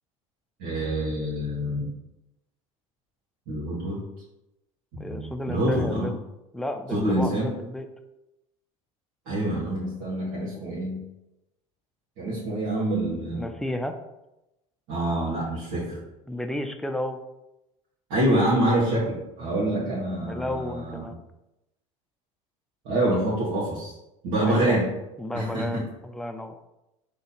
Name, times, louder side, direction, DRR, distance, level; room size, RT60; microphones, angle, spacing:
voice 1, 0.6-1.9 3.5-4.0 4.9-6.1 6.9-7.5 9.2-11.0 12.2-13.4 14.9-16.0 18.1-21.2 22.8-23.9 24.2-24.9 25.3-25.8, right 1 dB, 70° right, -8 dB, 1.4 m, -26 dB
voice 2, 5.0-6.2 6.5-7.9 10.5-10.7 13.3-14.0 16.3-17.2 19.6-21.1 24.5-24.8 25.2-26.6, left 1 dB, 5° left, 6 dB, 0.4 m, -32 dB
3.9 x 2.9 x 4.0 m, 0.92 s
hypercardioid pair, 80°, 17 cm